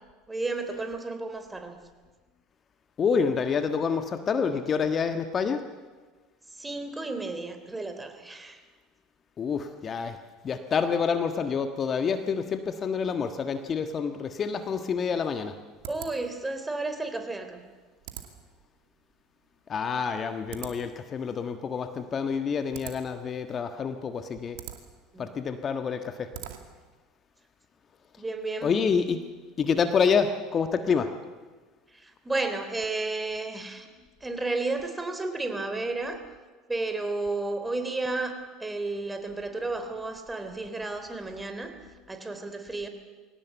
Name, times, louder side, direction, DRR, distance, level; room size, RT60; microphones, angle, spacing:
voice 1, 0.3-1.8 6.5-8.6 15.9-17.6 25.1-25.3 28.2-28.7 31.9-33.9 34.2-36.2 36.7-41.7 42.1-42.9, right 2 dB, 15° right, 7 dB, 3.4 m, -32 dB
voice 2, 3.0-5.7 9.4-10.2 10.4-15.6 19.7-24.6 25.2-26.3 28.6-29.2 29.6-31.1, left 6 dB, 35° left, 8 dB, 1.5 m, -27 dB
sound 1, 14.8-27.0, right 11 dB, 65° right, 2.2 m, -47 dB
22.0 x 18.0 x 8.4 m, 1.4 s
hypercardioid pair, 70°, 0 cm